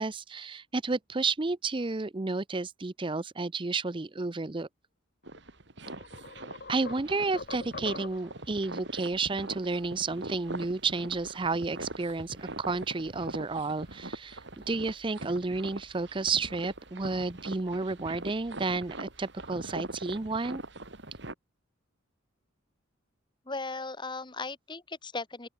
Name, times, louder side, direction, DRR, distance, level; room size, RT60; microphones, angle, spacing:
voice 1, 0.0-4.7 6.7-14.4 14.7-20.6, right 3 dB, 25° right, 0.6 m, -31 dB
sound 1, 5.2-21.3, right 2 dB, 60° right, 3.3 m, -42 dB
sound 2, 5.3-5.4 5.9-8.4, left 3 dB, 50° left, 2.0 m, -43 dB
voice 2, 23.4-25.5, left 3 dB, 25° left, 1.6 m, -37 dB
open air
head